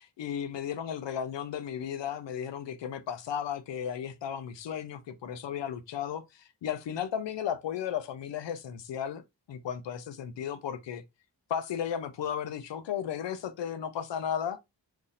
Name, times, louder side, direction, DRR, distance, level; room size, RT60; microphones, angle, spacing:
voice 1, 0.0-9.2 9.5-11.0 11.5-14.6, left 8 dB, 75° left, 0.6 m, -34 dB
4.0 x 2.7 x 2.5 m
cardioid pair, 70°, 44 cm